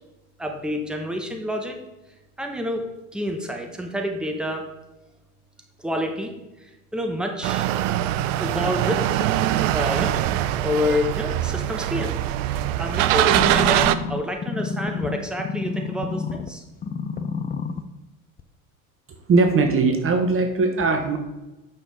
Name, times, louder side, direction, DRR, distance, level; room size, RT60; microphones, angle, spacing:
voice 1, 0.4-1.8 2.4-4.7 5.8-6.3 6.6-7.7 8.4-9.3 9.7-12.1 12.8-16.6, left 1 dB, ahead, 3 dB, 1.2 m, -28 dB
sound 1, 7.4-14.0, right 13 dB, 60° right, 0.6 m, -22 dB
sound 2, 13.3-16.5 16.8-17.8 18.4-18.5, left 5 dB, 20° left, 0.7 m, -29 dB
voice 2, 19.1-21.2, right 3 dB, 30° right, 5 dB, 1.1 m, -20 dB
9.0 x 6.2 x 3.8 m, 1.0 s
hypercardioid pair, 75°, 43 cm